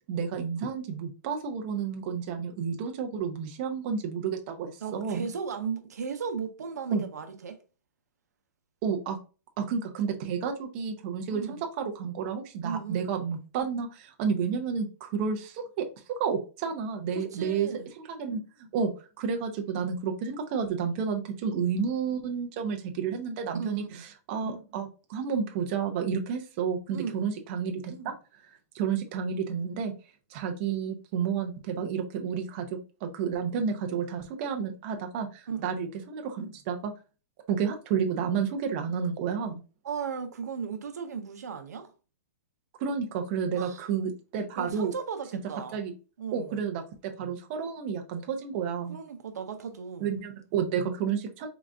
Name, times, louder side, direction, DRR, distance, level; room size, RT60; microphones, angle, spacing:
voice 1, 0.1-5.3 6.9-7.0 8.8-9.2 9.6-17.7 18.0-18.9 19.2-28.2 28.4-29.9 30.3-36.9 37.5-39.6 42.8-44.9 45.7-45.9 46.3-49.0 50.0-51.5, right 6 dB, 40° right, 0.7 m, -31 dB
voice 2, 4.8-7.6 11.3-11.6 12.6-13.1 17.1-17.9 23.5-24.0 26.9-27.2 35.5-35.7 39.8-41.9 43.6-43.9 44.6-45.8 46.2-46.6 48.9-50.1, right 6 dB, 85° right, 0.8 m, -36 dB
3.9 x 2.4 x 3.4 m
hypercardioid pair, 150°, 9 cm